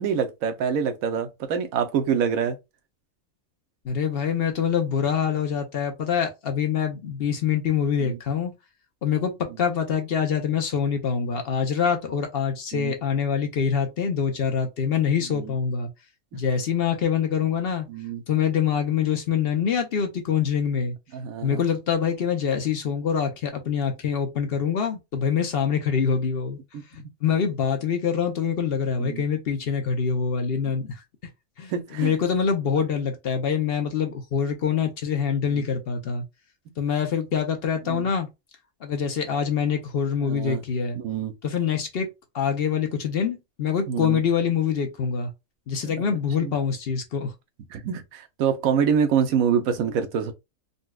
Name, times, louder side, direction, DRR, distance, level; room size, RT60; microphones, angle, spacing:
voice 1, 0.0-2.6 8.0-8.2 12.7-13.0 15.3-15.5 16.3-16.4 17.9-18.2 21.1-21.6 26.7-26.8 29.0-29.2 31.7-32.1 35.5-35.6 37.9-38.1 40.3-40.6 40.9-41.3 43.9-44.2 45.8-46.0 46.4-46.5 47.7-50.3, right 7 dB, 85° right, 1.1 m, -26 dB
voice 2, 3.8-8.5 9.0-15.9 16.3-17.9 18.3-20.9 21.4-26.6 26.9-31.0 31.6-36.2 36.8-38.3 38.8-41.0 41.4-42.1 42.3-45.3 45.7-47.3, left 7 dB, 55° left, 0.8 m, -25 dB
4.0 x 2.2 x 2.2 m
omnidirectional pair, 1.4 m